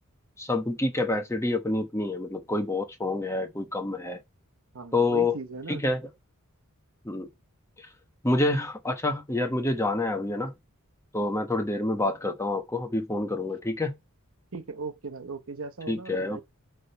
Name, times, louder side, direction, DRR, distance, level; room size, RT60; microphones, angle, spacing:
voice 1, 0.4-4.2 4.9-5.4 5.7-6.0 7.0-7.3 8.2-10.5 11.1-13.9 15.9-16.4, left 2 dB, 15° left, 1.0 m, -27 dB
voice 2, 4.7-5.8 14.5-16.4, right 4 dB, 70° right, 0.9 m, -38 dB
8.5 x 3.4 x 5.6 m
head